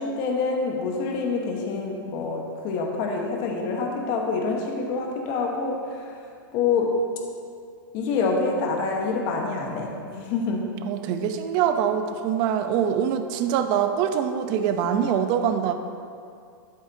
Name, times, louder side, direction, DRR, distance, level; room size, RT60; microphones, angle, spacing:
voice 1, 0.0-6.2 6.5-7.0 7.9-10.7, left 4 dB, 40° left, 1 dB, 1.2 m, -26 dB
voice 2, 10.9-15.7, right 8 dB, 40° right, 8 dB, 0.6 m, -24 dB
11.5 x 8.2 x 2.7 m, 2.3 s
hypercardioid pair, 140°, 12 cm